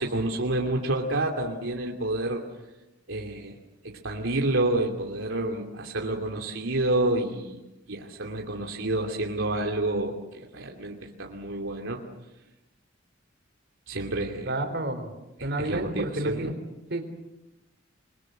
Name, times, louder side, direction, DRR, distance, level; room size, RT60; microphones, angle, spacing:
voice 1, 0.0-2.4 3.1-3.6 3.8-7.6 7.9-12.0 13.9-14.5 15.4-16.5, right 2 dB, 80° right, 0 dB, 2.7 m, -29 dB
voice 2, 14.5-15.1 15.4-16.5 16.9-17.0, right 2 dB, 60° right, 7 dB, 4.0 m, -30 dB
29.0 x 22.0 x 7.8 m, 0.99 s
head